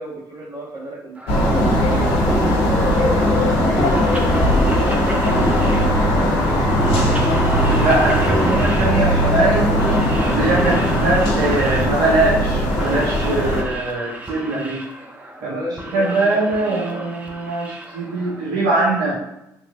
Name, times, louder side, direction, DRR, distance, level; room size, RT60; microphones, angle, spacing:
voice 1, 0.0-2.3 2.7-6.8 8.2-8.6 15.4-17.1, right 1 dB, 45° right, -5 dB, 1.3 m, -33 dB
sound 1, 1.2-18.6, right 1 dB, 15° right, 0.6 m, -31 dB
sound 2, 1.3-13.6, equal, 70° left, 0.7 m, -18 dB
voice 2, 7.8-9.7 10.3-14.8 15.4-15.5 15.9-19.1, right 2 dB, 80° right, -5 dB, 0.6 m, -21 dB
2.9 x 2.3 x 2.4 m, 0.86 s
hypercardioid pair, 45°, 10 cm